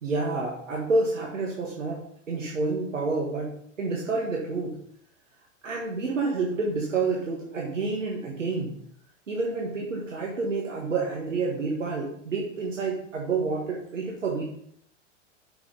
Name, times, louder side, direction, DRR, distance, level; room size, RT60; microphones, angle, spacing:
voice 1, 0.0-3.5 3.8-4.8 5.6-8.8 9.3-14.4, right 3 dB, 75° right, -2 dB, 1.7 m, -29 dB
7.5 x 5.9 x 5.5 m, 0.67 s
figure-of-eight pair, 90°, 38 cm